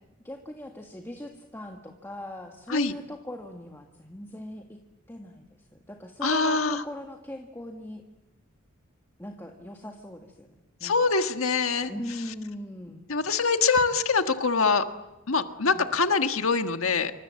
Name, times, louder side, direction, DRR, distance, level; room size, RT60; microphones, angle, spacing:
voice 1, 0.2-4.8 5.1-8.0 9.2-10.5 10.8-11.1 11.9-13.1 15.6-15.9, left 1 dB, 10° left, 2 dB, 1.8 m, -40 dB
voice 2, 6.2-6.8 10.8-11.9 13.1-14.9 15.3-17.1, left 4 dB, 80° left, 7 dB, 1.5 m, -24 dB
27.5 x 25.5 x 7.7 m, 0.99 s
head